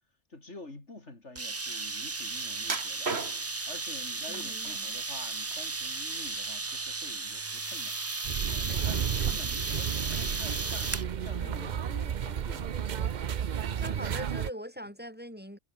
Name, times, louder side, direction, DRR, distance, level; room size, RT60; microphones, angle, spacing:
voice 1, 0.3-3.1 3.7-8.0 8.5-12.8, left 2 dB, 85° left, 4.7 m, -48 dB
sound 1, 1.4-11.1, right 3 dB, 25° right, 0.3 m, -35 dB
sound 2, 2.6-3.7 4.3-5.0 5.4-6.3 6.7-6.9 7.4-7.5, right 4 dB, 65° right, 2.5 m, -36 dB
voice 2, 4.3-4.9 13.5-15.6, equal, 10° right, 7.2 m, -42 dB
Covent Garden - Crowded Lift, 8.2-14.5, right 8 dB, 50° right, 0.7 m, -32 dB
omnidirectional pair, 1.2 m